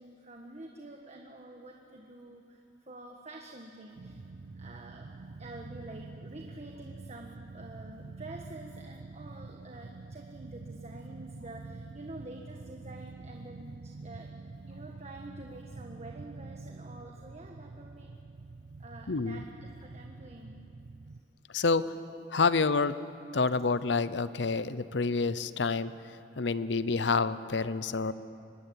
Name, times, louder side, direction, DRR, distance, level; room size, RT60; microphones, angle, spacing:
voice 1, 0.0-4.3 4.5-5.1 5.4-14.3 14.7-18.2 18.8-19.5 19.8-20.6, right 2 dB, 35° right, 2 dB, 1.4 m, -48 dB
sound 1, 3.9-21.2, right 3 dB, 55° right, 0.5 m, -46 dB
voice 2, 19.1-19.4 21.5-21.9 22.3-23.0 23.3-25.9 26.4-28.1, left 4 dB, 70° left, 15 dB, 0.8 m, -28 dB
24.0 x 20.5 x 8.7 m, 2.6 s
head